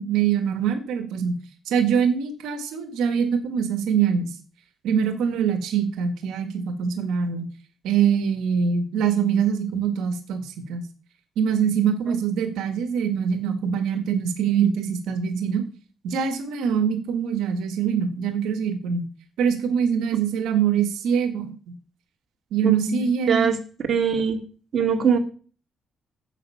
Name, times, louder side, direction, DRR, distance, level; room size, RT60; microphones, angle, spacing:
voice 1, 0.0-1.4 1.7-4.3 4.8-7.4 7.8-10.8 11.4-15.6 16.0-19.1 19.4-21.5 22.5-23.5, right 7 dB, 90° right, 7 dB, 1.7 m, -23 dB
voice 2, 22.6-23.6 23.9-24.4 24.7-25.2, right 6 dB, 55° right, 3 dB, 2.3 m, -22 dB
9.2 x 8.2 x 5.7 m, 0.40 s
cardioid pair, 90°, 0 cm